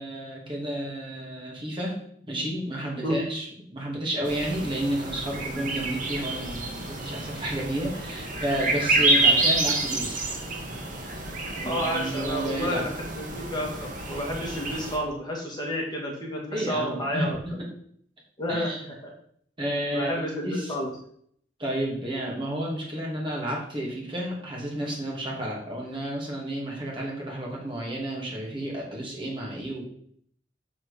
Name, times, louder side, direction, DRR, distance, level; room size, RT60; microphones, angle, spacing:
voice 1, 0.0-2.0 2.3-3.5 3.7-10.3 11.5-12.8 16.5-17.7 18.5-18.9 19.6-20.7 21.6-29.8, right 1 dB, 30° right, -2 dB, 3.0 m, -31 dB
sound 1, 4.2-15.0, right 2 dB, 45° right, 2.1 m, -28 dB
voice 2, 11.6-17.4 18.4-18.7 19.0-19.1 19.9-20.9, equal, 25° left, -1 dB, 2.2 m, -30 dB
7.8 x 7.3 x 5.3 m, 0.63 s
head